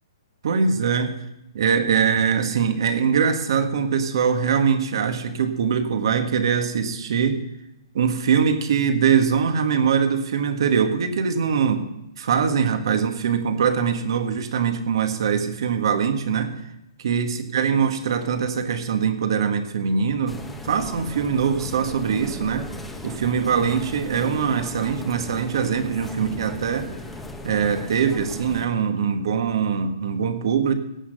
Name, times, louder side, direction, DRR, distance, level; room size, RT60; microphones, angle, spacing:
voice 1, 0.4-1.2 1.5-7.4 7.9-11.8 12.2-16.6 17.0-22.7 23.0-26.9 27.4-30.7, right 6 dB, 60° right, 7 dB, 1.7 m, -22 dB
sound 1, 20.3-28.7, left 2 dB, 5° left, 1.1 m, -37 dB
17.5 x 6.0 x 6.6 m, 0.87 s
hypercardioid pair, 155°, 3 cm